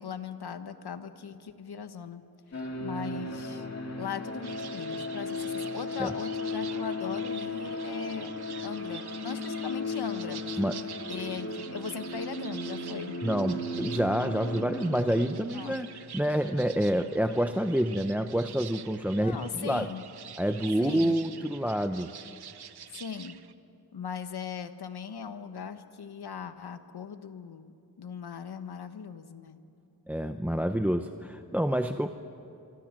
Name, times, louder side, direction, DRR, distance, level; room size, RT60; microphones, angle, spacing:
voice 1, 0.0-2.2 2.5-3.7 4.0-8.3 8.6-10.6 11.1-13.2 15.5-15.8 19.2-20.1 20.8-21.2 22.9-23.3 23.9-29.6, left 7 dB, 85° left, 9 dB, 1.3 m, -39 dB
sound 1, 2.5-15.2, left 2 dB, 40° left, 2.3 m, -35 dB
sound 2, 4.4-23.5, right 8 dB, 85° right, 0.9 m, -47 dB
voice 2, 13.2-19.9 20.4-22.1 30.1-32.1, equal, 5° right, 8 dB, 0.6 m, -28 dB
26.5 x 24.0 x 7.5 m, 2.6 s
wide cardioid pair, 155°, 38 cm